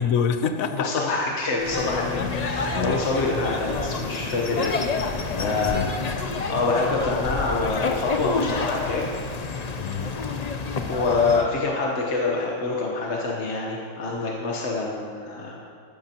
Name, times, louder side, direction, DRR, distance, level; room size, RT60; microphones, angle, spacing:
voice 1, 0.0-1.1 2.2-2.3 2.7-3.0 5.3-6.2 9.8-10.2, left 6 dB, 85° left, 9 dB, 1.1 m, -27 dB
voice 2, 0.7-5.9 6.5-9.1 10.9-15.6, left 3 dB, 60° left, -2 dB, 1.5 m, -26 dB
sound 1, 1.5-4.5, left 2 dB, 55° right, 1.7 m, -37 dB
sound 2, 1.6-11.4, left 4 dB, 40° left, 0.6 m, -29 dB
14.0 x 13.0 x 3.0 m, 2.5 s
omnidirectional pair, 1.4 m